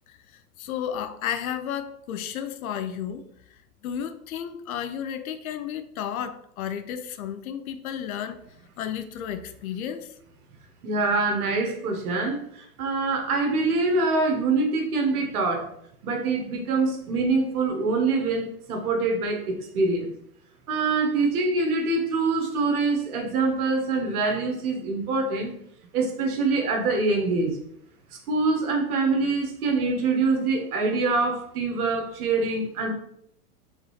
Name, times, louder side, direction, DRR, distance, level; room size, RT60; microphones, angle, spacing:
voice 1, 0.1-8.4 8.8-10.1, left 9 dB, 65° left, 10 dB, 0.6 m, -33 dB
voice 2, 10.8-15.7 16.0-20.1 20.7-25.5 25.9-27.6 28.3-32.9, right 3 dB, 70° right, 3 dB, 1.3 m, -25 dB
3.8 x 3.6 x 3.1 m, 0.72 s
hypercardioid pair, 110°, 46 cm